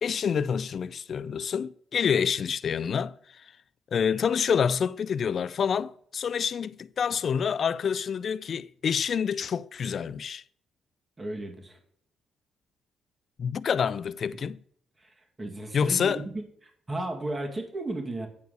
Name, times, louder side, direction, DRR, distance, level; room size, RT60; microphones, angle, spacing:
voice 1, 0.0-3.5 3.9-10.4 13.4-14.6 15.7-16.2, left 7 dB, 55° left, 0.3 m, -27 dB
voice 2, 11.2-11.8 15.0-18.3, right 2 dB, 25° right, 2.0 m, -35 dB
9.5 x 4.7 x 6.7 m
cardioid pair, 90°, 0 cm